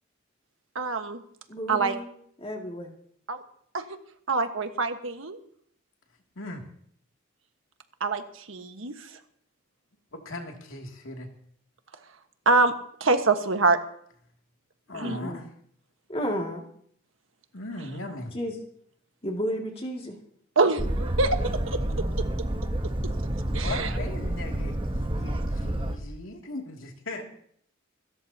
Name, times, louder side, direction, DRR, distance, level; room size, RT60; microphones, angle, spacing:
voice 1, 0.7-1.2 1.7-1.9 3.3-3.4 3.7-3.8 4.3-5.4 8.0-9.1 12.4-12.7 13.0-13.8 14.9-15.2 20.5-21.3 21.7-22.2 23.0-23.1 23.5-23.9, right 3 dB, 75° right, 7 dB, 1.5 m, -25 dB
voice 2, 1.5-2.1 2.4-2.9 14.9-15.4 16.1-16.6 18.0-18.6 19.2-20.2 27.2-27.3, equal, 30° left, 0 dB, 2.4 m, -33 dB
voice 3, 10.1-11.3 14.9-15.5 17.5-18.3 23.5-27.2, left 2 dB, 80° left, 1 dB, 2.7 m, -38 dB
Boat Water vehicle, 20.8-26.0, right 1 dB, 25° right, 1.1 m, -29 dB
27.5 x 13.5 x 2.9 m, 0.65 s
head